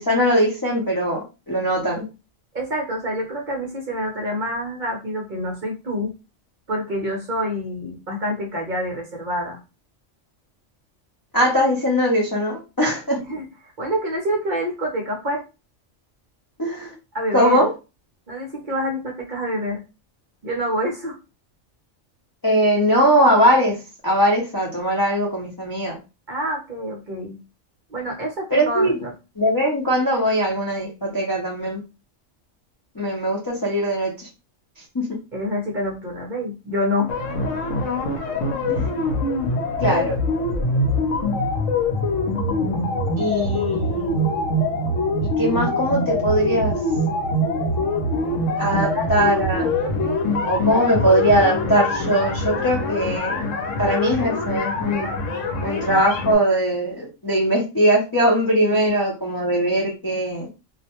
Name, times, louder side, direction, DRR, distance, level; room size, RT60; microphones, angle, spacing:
voice 1, 0.1-2.0 11.3-13.2 16.6-16.9 17.3-17.7 22.4-23.8 24.0-26.0 28.5-29.0 29.4-31.8 33.0-34.3 34.9-35.0 38.7-38.9 39.8-40.2 43.2-44.2 45.2-46.8 48.6-49.7 50.5-53.5 53.8-55.1 55.6-60.5, equal, 35° left, -4 dB, 0.3 m, -20 dB
voice 2, 2.5-6.1 6.7-9.6 13.2-15.4 17.1-17.7 18.3-19.8 20.4-21.2 26.3-27.4 27.9-29.1 35.3-37.1 48.6-49.1 58.7-58.8, equal, 50° right, -1 dB, 0.7 m, -27 dB
sound 1, 37.1-56.3, left 2 dB, 75° left, 1.0 m, -24 dB
2.4 x 2.1 x 2.8 m, 0.29 s
omnidirectional pair, 1.3 m